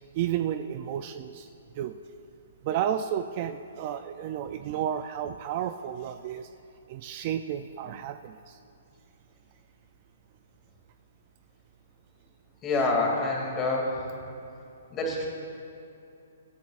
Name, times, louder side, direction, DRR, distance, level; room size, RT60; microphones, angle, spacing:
voice 1, 0.1-1.5 1.8-2.0 2.6-6.5 6.9-8.6, right 10 dB, 35° right, 9 dB, 0.4 m, -32 dB
voice 2, 12.6-14.1 14.9-15.3, left 2 dB, 15° left, -1 dB, 2.5 m, -27 dB
23.5 x 10.5 x 2.5 m, 2.7 s
hypercardioid pair, 160°, 0 cm